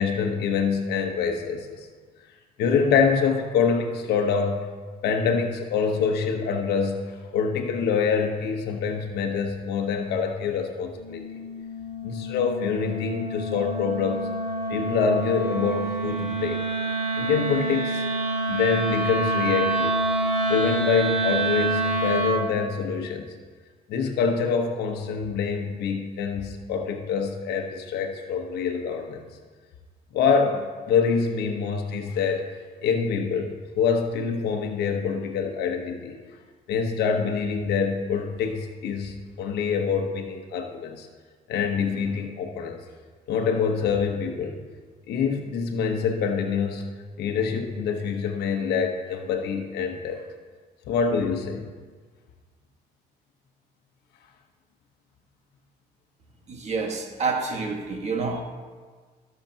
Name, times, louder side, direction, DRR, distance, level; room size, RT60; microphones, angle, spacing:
voice 1, 0.0-1.7 2.6-4.6 5.0-11.3 12.0-14.3 14.7-16.6 17.1-18.0 18.5-20.0 20.5-23.3 23.9-29.2 30.1-32.5 32.8-36.2 36.7-41.1 41.5-42.8 43.3-44.6 45.1-46.9 47.2-50.2 50.9-51.6, left 6 dB, 75° left, 4 dB, 1.2 m, -25 dB
Wind instrument woodwind instrument, 11.0-22.5, right 2 dB, 90° right, 2.1 m, -27 dB
voice 2, 56.5-58.4, right 4 dB, 40° right, 2 dB, 1.6 m, -28 dB
16.0 x 7.0 x 2.9 m, 1.5 s
cardioid pair, 110°, 17 cm